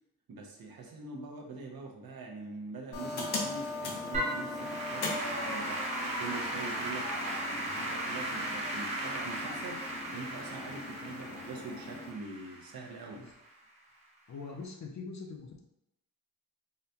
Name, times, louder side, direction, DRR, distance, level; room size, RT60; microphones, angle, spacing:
voice 1, 0.3-13.3, right 3 dB, 70° right, 1 dB, 0.6 m, -44 dB
sound 1, 2.9-12.1, left 2 dB, 85° left, 0.7 m, -40 dB
Applause / Keyboard (musical), 4.1-13.5, right 1 dB, 20° right, 0.7 m, -37 dB
voice 2, 14.3-15.6, left 4 dB, 50° left, 1 dB, 0.4 m, -43 dB
3.8 x 2.2 x 2.7 m, 0.87 s
wide cardioid pair, 175°, 37 cm